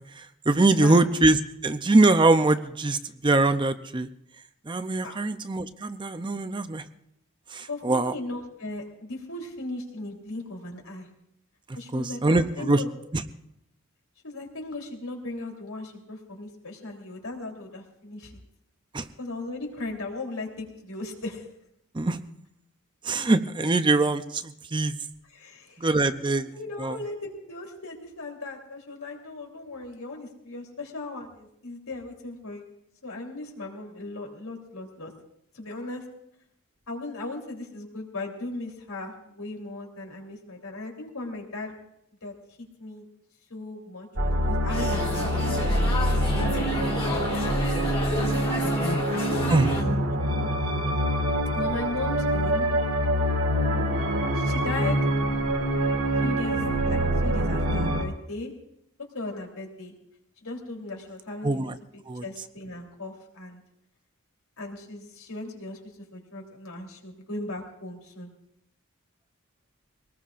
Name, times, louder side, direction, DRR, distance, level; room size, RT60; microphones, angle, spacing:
voice 1, 0.2-4.1 4.7-6.8 7.5-8.1 11.9-12.8 13.1-13.2 18.9-19.1 21.9-22.2 23.0-25.0 25.8-26.5 26.8-27.0 49.5-49.7 61.4-61.8 62.1-62.2, right 2 dB, 20° right, 10 dB, 0.5 m, -23 dB
voice 2, 7.7-11.1 11.7-12.9 14.2-18.3 19.2-21.5 25.3-25.9 26.5-32.7 33.0-35.1 35.5-36.0 36.9-41.7 42.2-42.3 42.8-43.0 43.5-47.5 48.5-49.5 49.8-50.2 51.5-52.7 54.3-55.0 56.2-58.5 59.1-59.9 60.4-61.7 62.2-63.6 64.6-68.3, left 2 dB, 80° left, 1 dB, 3.5 m, -37 dB
sound 1, 44.2-58.0, equal, 75° right, 1.8 m, -25 dB
sound 2, 44.7-49.8, left 2 dB, 25° left, 2.1 m, -32 dB
24.0 x 19.5 x 2.5 m, 0.75 s
head